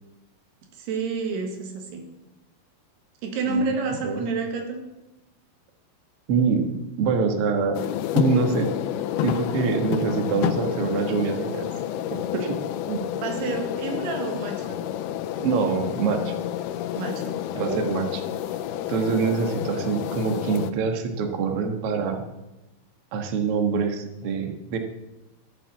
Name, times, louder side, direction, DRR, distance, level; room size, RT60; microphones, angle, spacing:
voice 1, 0.8-2.0 3.2-4.8 13.2-14.8 17.0-17.9, right 4 dB, 85° right, 4 dB, 3.8 m, -29 dB
voice 2, 6.3-6.7 7.0-7.8 8.1-8.7 9.2-11.6 12.1-12.6 12.9-13.0 15.4-16.4 17.5-18.2 18.9-22.2 23.1-24.8, right 5 dB, 65° right, 5 dB, 1.5 m, -25 dB
sound 1, 7.7-20.7, left 11 dB, 85° left, 2.5 m, -29 dB
14.5 x 7.5 x 7.1 m, 0.99 s
omnidirectional pair, 4.6 m